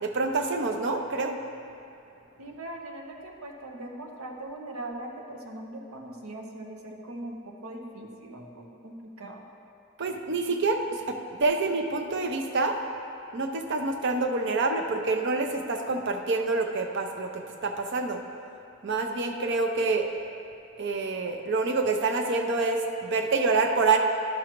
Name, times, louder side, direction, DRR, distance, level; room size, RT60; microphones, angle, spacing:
voice 1, 0.0-1.4 10.0-12.8 13.3-18.2 18.8-20.1 20.8-24.0, right 3 dB, 55° right, 4 dB, 0.6 m, -27 dB
voice 2, 2.4-9.5, right 1 dB, 90° right, 1 dB, 0.9 m, -40 dB
11.5 x 6.1 x 3.0 m, 2.6 s
head